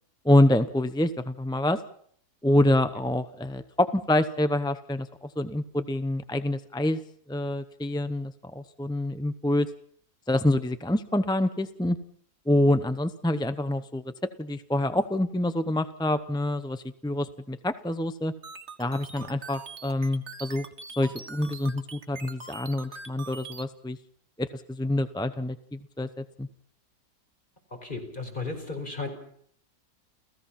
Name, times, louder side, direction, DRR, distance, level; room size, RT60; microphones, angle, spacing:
voice 1, 0.2-1.8 2.4-7.0 7.3-9.7 10.3-12.0 12.5-14.0 14.4-18.3 18.8-20.7 21.0-24.0 24.4-26.5, left 1 dB, 5° left, 11 dB, 0.5 m, -26 dB
sound 1, 18.4-23.6, right 4 dB, 45° right, 1.9 m, -43 dB
voice 2, 27.7-29.1, left 3 dB, 30° left, 4 dB, 5.2 m, -35 dB
29.5 x 16.5 x 5.9 m, 0.63 s
omnidirectional pair, 1.7 m